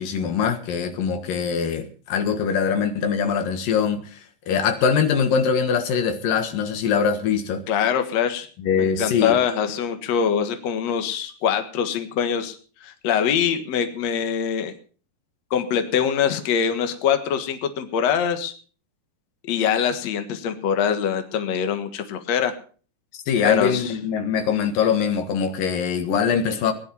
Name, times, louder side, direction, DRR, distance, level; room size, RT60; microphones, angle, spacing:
voice 1, 0.0-4.2 4.5-7.6 8.6-9.4 23.1-26.7, left 6 dB, 85° left, 3.2 m, -23 dB
voice 2, 7.7-8.5 8.8-12.6 12.8-14.7 15.5-18.5 19.5-22.5 23.4-23.9, left 8 dB, 60° left, 2.6 m, -23 dB
18.5 x 10.5 x 5.5 m
omnidirectional pair, 3.8 m